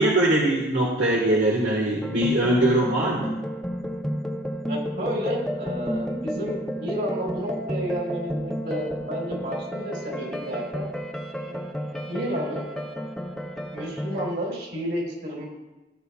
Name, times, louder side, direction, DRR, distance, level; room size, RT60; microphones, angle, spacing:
voice 1, 0.0-3.3, right 1 dB, 75° right, -4 dB, 1.6 m, -21 dB
sound 1, 2.0-14.3, equal, 5° left, 0.7 m, -31 dB
voice 2, 4.7-10.9 11.4-11.6 12.1-12.7 13.7-15.5, equal, 55° right, -2 dB, 3.7 m, -31 dB
15.5 x 8.8 x 2.4 m, 1.1 s
head